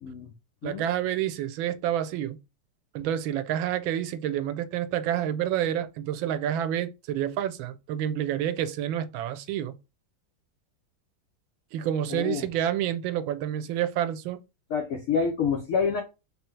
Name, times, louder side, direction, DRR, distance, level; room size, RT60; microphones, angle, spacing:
voice 1, 0.0-0.3 0.6-0.8 12.1-12.5 14.7-16.0, left 6 dB, 70° left, 0.8 m, -27 dB
voice 2, 0.6-2.4 2.9-9.7 11.7-14.4, right 11 dB, 90° right, 1.4 m, -28 dB
3.3 x 3.3 x 3.1 m
omnidirectional pair, 2.1 m